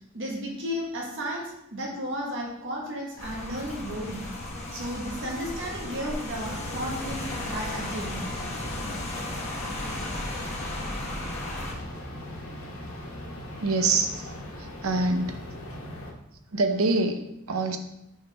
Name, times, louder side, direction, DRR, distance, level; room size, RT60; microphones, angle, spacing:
voice 1, 0.1-4.2 4.7-8.2, equal, 55° right, -2 dB, 1.4 m, -33 dB
Rain, 3.2-11.7, left 1 dB, 30° left, 1.2 m, -35 dB
sound 1, 6.4-16.1, left 1 dB, 65° left, 1.2 m, -39 dB
voice 2, 13.6-14.3 14.6-15.4 16.5-17.8, right 3 dB, 70° right, 7 dB, 0.7 m, -25 dB
5.9 x 5.3 x 3.5 m, 0.83 s
head